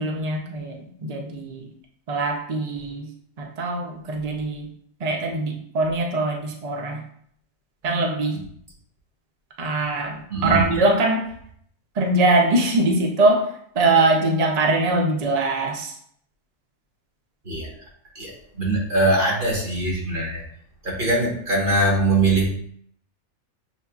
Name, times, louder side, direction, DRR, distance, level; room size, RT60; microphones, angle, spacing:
voice 1, 0.0-1.7 2.1-3.1 3.4-4.7 5.0-7.0 7.8-8.4 9.6-11.3 12.0-13.5 13.8-15.9, right 2 dB, 75° right, 1 dB, 0.3 m, -22 dB
voice 2, 10.3-10.8 17.4-17.7 18.1-20.4 20.8-22.5, right 2 dB, 40° right, -3 dB, 1.4 m, -22 dB
6.6 x 2.6 x 2.3 m, 0.65 s
omnidirectional pair, 1.5 m